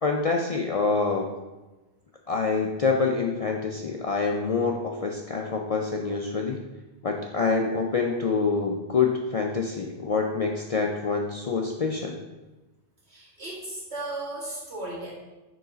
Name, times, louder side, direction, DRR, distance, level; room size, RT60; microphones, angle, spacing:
voice 1, 0.0-1.3 2.3-6.6 7.0-12.2, left 4 dB, 50° left, 1 dB, 0.4 m, -26 dB
voice 2, 13.1-15.1, right 2 dB, 75° right, -7 dB, 2.2 m, -35 dB
4.7 x 4.0 x 5.0 m, 1.1 s
omnidirectional pair, 1.1 m